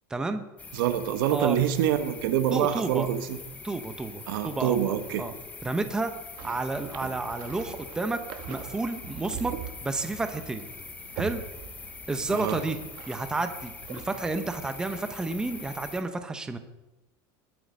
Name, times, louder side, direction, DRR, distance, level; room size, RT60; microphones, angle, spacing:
voice 1, 0.1-0.4 1.3-1.6 2.5-3.1 3.6-5.3 5.6-6.1 6.4-8.2 8.5-9.5 9.8-10.7 11.2-11.4 12.1-12.8 13.1-16.6, right 3 dB, 5° right, 8 dB, 0.7 m, -31 dB
sound 1, 0.6-16.0, left 4 dB, 15° left, 0.9 m, -44 dB
voice 2, 0.7-3.4 4.3-5.2 12.3-12.6, right 10 dB, 85° right, 10 dB, 1.3 m, -26 dB
sound 2, 6.4-15.8, right 9 dB, 45° right, 1.2 m, -43 dB
20.5 x 7.7 x 5.2 m, 1.0 s
cardioid pair, 175°, 11 cm